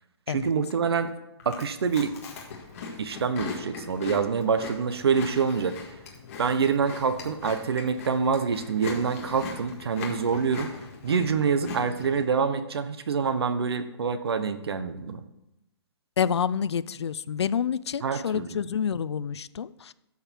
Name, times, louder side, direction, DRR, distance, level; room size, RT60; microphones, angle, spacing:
voice 1, 0.3-1.1 1.4-2.2 3.0-5.8 6.4-10.7 11.0-15.2 18.0-18.6, right 5 dB, 65° right, 11 dB, 1.0 m, -26 dB
Chewing mastication, 1.4-12.2, left 4 dB, 30° left, 1.8 m, -40 dB
voice 2, 16.2-19.9, left 7 dB, 70° left, 18 dB, 0.5 m, -28 dB
13.0 x 6.6 x 4.6 m, 0.90 s
hypercardioid pair, 170°, 14 cm